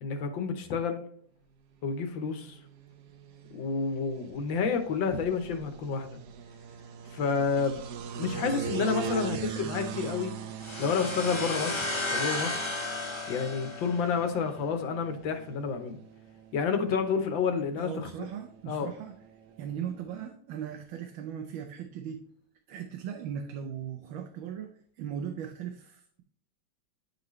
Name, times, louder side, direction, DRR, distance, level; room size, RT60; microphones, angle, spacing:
voice 1, 0.0-1.0 1.8-2.6 3.5-6.2 7.1-7.8 8.2-10.3 10.8-12.6 13.3-16.0 16.5-18.3 18.7-18.9, left 5 dB, 75° left, 6 dB, 1.6 m, -30 dB
sound 1, 2.0-20.0, right 8 dB, 70° right, 1.1 m, -42 dB
sound 2, 10.6-14.3, left 2 dB, 15° left, 1.1 m, -33 dB
voice 2, 17.8-19.2 19.6-22.2 22.7-24.7 25.0-26.2, right 8 dB, 90° right, 5 dB, 1.5 m, -38 dB
9.6 x 4.0 x 3.1 m, 0.62 s
omnidirectional pair, 2.1 m